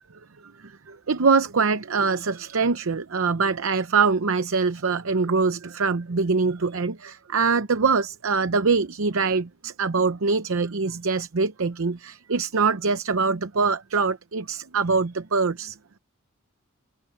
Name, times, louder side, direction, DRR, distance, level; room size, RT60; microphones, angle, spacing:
voice 1, 0.4-15.8, right 4 dB, 65° right, 0.7 m, -24 dB
head